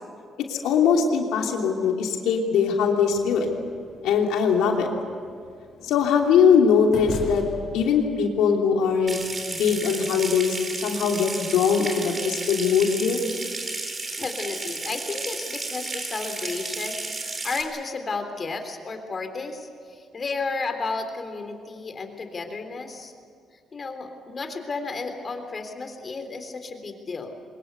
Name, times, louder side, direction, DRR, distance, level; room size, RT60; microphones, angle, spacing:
voice 1, 0.5-3.5 4.0-4.9 5.8-7.4 7.7-9.2 9.5-10.6 10.8-13.2, left 6 dB, 90° left, 1 dB, 3.1 m, -21 dB
sound 1, 3.1-9.8, left 4 dB, 55° left, 4.9 m, -42 dB
Water tap faucet / Sink (filling or washing) / Trickle dribble, 9.1-17.6, right 3 dB, 30° right, 3.9 m, -33 dB
voice 2, 13.8-23.1 23.7-27.4, left 3 dB, 40° left, 6 dB, 3.4 m, -33 dB
23.5 x 21.0 x 8.2 m, 2.1 s
cardioid pair, 90°, 0 cm